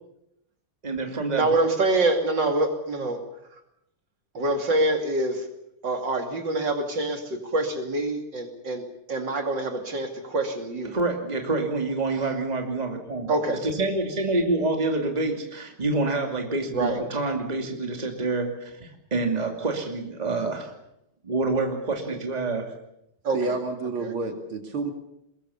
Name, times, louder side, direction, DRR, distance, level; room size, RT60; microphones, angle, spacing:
voice 1, 0.8-1.7 10.9-13.3 13.6-20.7 21.2-22.7, right 3 dB, 20° right, 3 dB, 2.6 m, -27 dB
voice 2, 1.3-3.2 4.3-5.5 5.8-10.9 13.3-13.6 16.7-17.0 23.2-23.6 24.0-24.1, right 2 dB, 55° right, 5 dB, 3.2 m, -26 dB
voice 3, 23.3-24.9, right 3 dB, 70° right, 5 dB, 3.3 m, -29 dB
22.5 x 22.0 x 7.1 m, 0.80 s
omnidirectional pair, 2.4 m